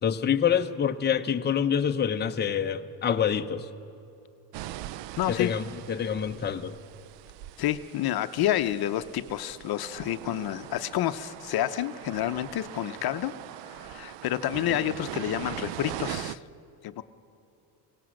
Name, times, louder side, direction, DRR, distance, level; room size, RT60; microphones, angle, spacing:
voice 1, 0.0-3.7 5.3-6.7, left 8 dB, 25° left, 7 dB, 0.7 m, -26 dB
sound 1, 4.5-16.4, right 14 dB, 75° right, 0.6 m, -41 dB
voice 2, 5.2-5.5 7.6-13.3 13.6-16.4 16.8-17.0, left 12 dB, 55° left, 11 dB, 0.7 m, -29 dB
23.0 x 18.0 x 6.4 m, 2.8 s
cardioid pair, 100°, 44 cm